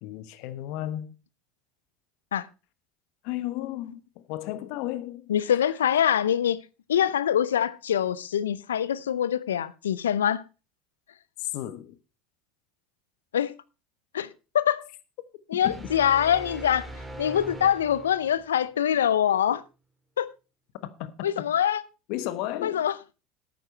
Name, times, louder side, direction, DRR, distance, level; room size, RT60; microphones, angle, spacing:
voice 1, 0.0-1.2 3.2-5.8 11.4-12.0 15.6-15.9 20.8-21.1 21.4-21.5 22.1-22.8, left 14 dB, 65° left, 1.2 m, -34 dB
voice 2, 5.3-6.6 6.9-10.4 13.3-13.5 14.1-14.3 14.5-14.8 15.5-16.9 17.2-19.6 20.2-20.3 21.2-21.8 22.6-22.9, left 9 dB, 85° left, 0.6 m, -24 dB
sound 1, 15.6-18.6, right 2 dB, 5° right, 3.6 m, -41 dB
12.5 x 9.3 x 4.3 m
hypercardioid pair, 75°, 0 cm